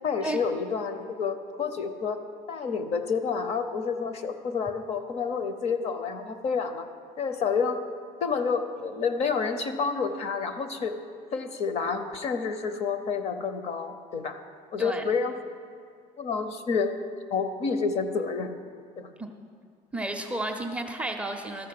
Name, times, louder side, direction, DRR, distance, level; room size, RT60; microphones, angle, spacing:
voice 1, 0.0-2.2 2.5-6.9 7.2-7.8 8.2-10.9 11.3-14.4 14.7-15.3 16.2-16.9 17.3-18.5 19.0-19.1, left 5 dB, 45° left, 9 dB, 0.7 m, -29 dB
voice 2, 14.8-15.1 19.2-19.3 19.9-21.7, right 2 dB, 10° right, 3 dB, 0.5 m, -32 dB
13.0 x 6.0 x 7.6 m, 2.1 s
cardioid pair, 175°, 15 cm